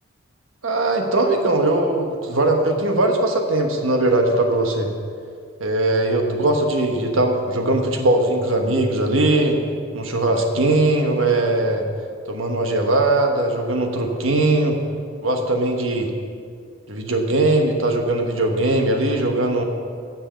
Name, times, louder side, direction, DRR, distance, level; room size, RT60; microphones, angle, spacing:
voice 1, 0.6-4.9 5.6-9.6 9.9-11.8 12.3-14.8 15.2-16.1 16.9-19.6, right 2 dB, 75° right, 3 dB, 1.3 m, -20 dB
9.2 x 7.6 x 7.0 m, 2.2 s
head